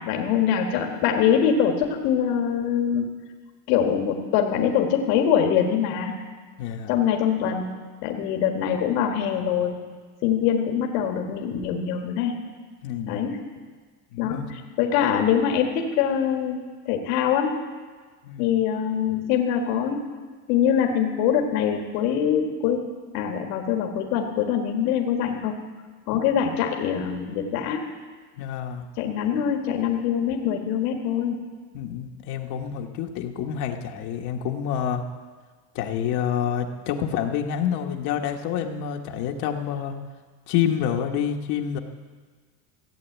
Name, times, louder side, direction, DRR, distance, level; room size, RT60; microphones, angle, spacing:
voice 1, 0.0-3.1 3.7-6.1 6.9-7.7 8.0-9.8 10.2-12.3 13.1-13.4 14.2-14.4 14.8-16.6 16.9-17.6 18.4-20.0 20.5-22.8 23.1-25.5 26.1-27.9 29.0-31.4, left 8 dB, 75° left, 2 dB, 1.9 m, -23 dB
voice 2, 6.6-6.9 12.8-13.2 14.1-14.5 18.2-18.5 26.1-26.2 28.4-28.9 31.7-35.0 35.7-39.9 40.5-41.8, left 9 dB, 55° left, 3 dB, 1.3 m, -28 dB
15.0 x 8.4 x 8.1 m, 1.5 s
cardioid pair, 150°, 46 cm